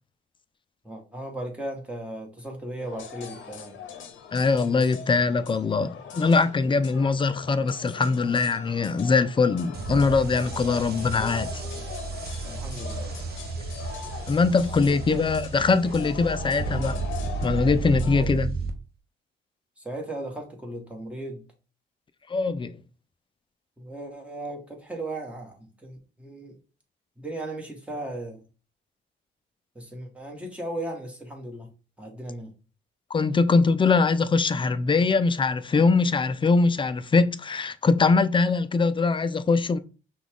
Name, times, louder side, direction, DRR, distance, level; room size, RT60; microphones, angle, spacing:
voice 1, 0.8-3.8 12.4-13.1 15.1-15.3 18.1-18.3 19.8-21.4 23.8-26.5 27.2-28.4 29.7-31.7 32.0-32.5, right 1 dB, 5° right, 1.5 m, -36 dB
sound 1, 2.8-18.3, left 6 dB, 75° left, 0.8 m, -41 dB
voice 2, 4.3-11.6 14.3-17.0 17.4-18.5 22.3-22.7 33.1-39.8, left 4 dB, 25° left, 0.4 m, -22 dB
sound 2, 9.7-18.7, right 4 dB, 50° right, 0.8 m, -33 dB
5.8 x 2.4 x 3.7 m
cardioid pair, 90°, 20 cm